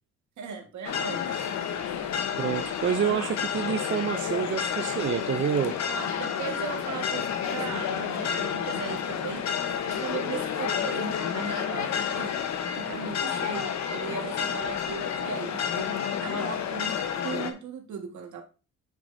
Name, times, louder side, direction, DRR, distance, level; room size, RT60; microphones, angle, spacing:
voice 1, 0.4-1.2 5.9-9.4 9.9-12.3 12.8-17.0 17.2-18.4, right 6 dB, 70° right, 1.7 m, -37 dB
sound 1, 0.8-17.5, left 8 dB, 65° left, 1.0 m, -30 dB
voice 2, 2.4-5.8, right 8 dB, 40° right, 0.5 m, -28 dB
9.0 x 4.9 x 2.7 m
cardioid pair, 90°, 30 cm